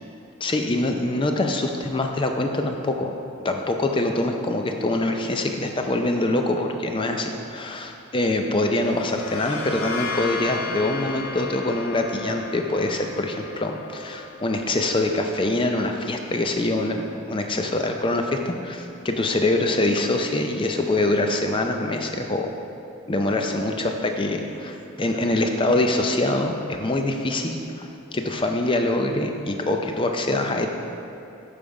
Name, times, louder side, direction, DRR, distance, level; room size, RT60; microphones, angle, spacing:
voice 1, 0.4-3.1 3.4-22.5 23.1-30.7, left 2 dB, 25° left, 4 dB, 0.5 m, -24 dB
sound 1, 8.7-16.3, left 4 dB, 80° left, 0.8 m, -35 dB
7.3 x 5.1 x 4.7 m, 2.7 s
head